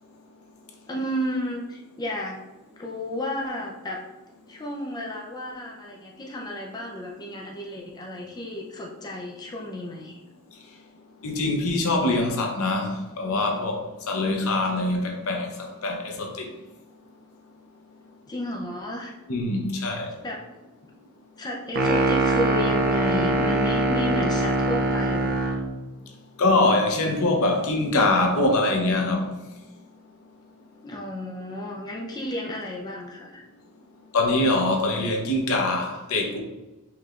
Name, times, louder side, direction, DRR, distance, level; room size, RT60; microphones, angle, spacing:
voice 1, 0.9-2.4 2.8-4.0 4.5-10.2 18.3-19.2 19.9-20.5 21.4-25.4 30.8-33.4, left 1 dB, 20° left, -1 dB, 0.4 m, -32 dB
voice 2, 11.2-15.5 15.8-16.5 19.3-20.1 26.4-29.3 34.1-36.4, left 2 dB, 65° left, 2 dB, 0.7 m, -23 dB
sound 1, 21.7-25.7, right 2 dB, 40° right, 0.5 m, -23 dB
4.6 x 3.2 x 2.4 m, 1.1 s
head